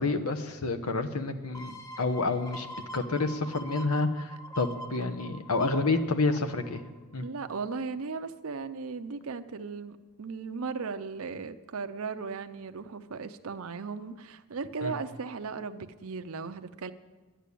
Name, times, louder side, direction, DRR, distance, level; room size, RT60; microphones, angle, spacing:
voice 1, 0.0-2.7 2.9-6.8 7.1-7.2 14.8-14.9, left 3 dB, 80° left, 8 dB, 1.1 m, -29 dB
sound 1, 1.5-7.0 7.5-7.6, right 1 dB, 15° left, 0.7 m, -44 dB
voice 2, 7.2-16.9, right 4 dB, 70° right, 8 dB, 0.7 m, -37 dB
11.0 x 10.5 x 8.5 m, 1.2 s
head